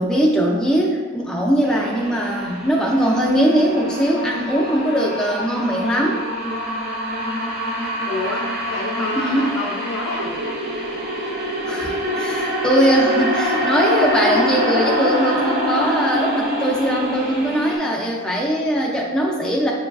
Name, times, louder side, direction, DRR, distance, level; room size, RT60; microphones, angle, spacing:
voice 1, 0.0-6.2 9.1-9.6 11.6-19.7, equal, 5° left, -3 dB, 0.3 m, -20 dB
sound 1, 1.6-17.8, equal, 35° right, 0.9 m, -25 dB
voice 2, 8.0-10.3, left 2 dB, 85° left, 0 dB, 0.7 m, -27 dB
sound 2, 9.9-17.2, right 1 dB, 80° right, 0.4 m, -33 dB
6.6 x 2.3 x 2.3 m, 1.5 s
head